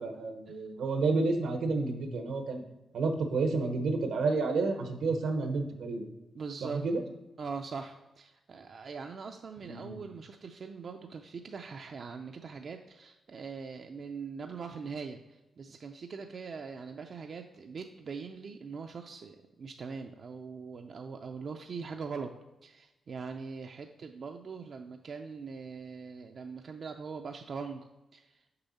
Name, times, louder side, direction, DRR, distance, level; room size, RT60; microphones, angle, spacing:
voice 1, 0.0-2.6 2.9-6.1 6.6-7.0 9.6-10.0, right 3 dB, 85° right, 6 dB, 1.0 m, -30 dB
voice 2, 6.3-6.8 7.4-22.3 22.6-27.9 28.1-28.4, right 5 dB, 55° right, 4 dB, 0.4 m, -42 dB
6.7 x 5.5 x 4.1 m, 1.0 s
cardioid pair, 85°, 0 cm